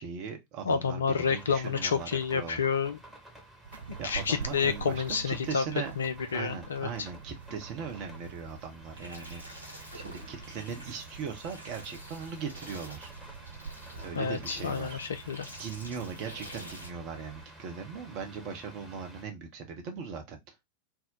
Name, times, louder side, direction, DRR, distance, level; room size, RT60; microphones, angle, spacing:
voice 1, 0.0-2.6 4.0-5.9 6.3-13.1 14.0-15.0 15.6-20.5, right 6 dB, 40° right, 0.8 m, -39 dB
voice 2, 0.7-3.0 4.0-5.6 6.0-7.1 14.2-15.5, left 6 dB, 70° left, 0.4 m, -29 dB
sound 1, 1.1-19.2, right 1 dB, ahead, 1.0 m, -52 dB
sound 2, 3.6-17.4, right 6 dB, 65° right, 0.3 m, -47 dB
sound 3, 9.0-16.9, equal, 85° right, 1.0 m, -48 dB
2.7 x 2.1 x 3.7 m
figure-of-eight pair, 90°, 0 cm